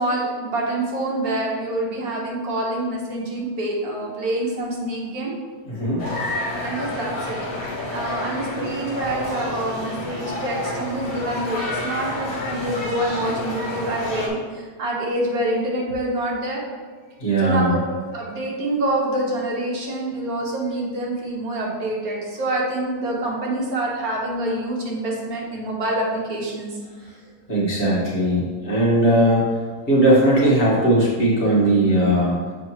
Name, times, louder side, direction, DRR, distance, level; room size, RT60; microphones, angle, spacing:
voice 1, 0.0-5.3 6.6-7.4 7.9-16.6 17.4-17.8 18.1-26.7, right 1 dB, 70° right, -2 dB, 1.6 m, -26 dB
voice 2, 5.7-6.0 17.2-17.8 27.5-29.4 29.9-32.4, right 1 dB, 45° left, -6 dB, 1.8 m, -18 dB
sound 1, 6.0-14.3, left 1 dB, 70° left, 1.7 m, -29 dB
6.7 x 5.1 x 3.0 m, 1.5 s
omnidirectional pair, 1.6 m